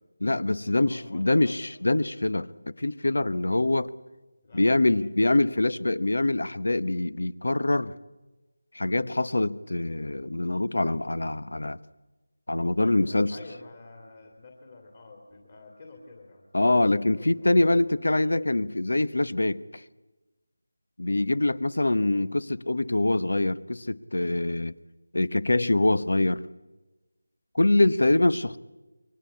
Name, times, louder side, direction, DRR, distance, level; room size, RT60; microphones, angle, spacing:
voice 1, 0.2-3.9 4.5-7.9 8.7-11.8 12.5-13.4 16.5-19.8 21.0-24.7 25.1-26.4 27.5-28.6, left 2 dB, 70° left, 16 dB, 1.1 m, -24 dB
voice 2, 0.8-1.6 4.4-6.0 12.8-17.8 21.8-22.0, left 3 dB, 25° left, 2 dB, 2.6 m, -49 dB
29.0 x 23.0 x 8.6 m, 1.2 s
figure-of-eight pair, 180°, 0 cm